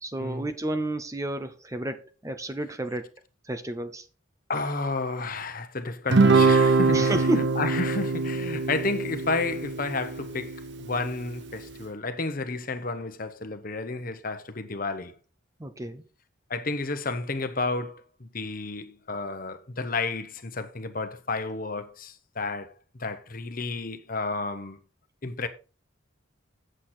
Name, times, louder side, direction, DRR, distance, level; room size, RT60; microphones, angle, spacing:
voice 1, 0.0-3.1 3.5-4.1 6.9-7.6 15.6-16.0, right 1 dB, 15° right, 0.6 m, -31 dB
voice 2, 4.5-7.3 7.6-15.1 16.5-24.8 25.2-25.5, left 3 dB, 45° left, 1.0 m, -31 dB
Guitar, 6.1-10.7, right 3 dB, 60° right, 0.9 m, -23 dB
8.3 x 7.7 x 4.2 m
head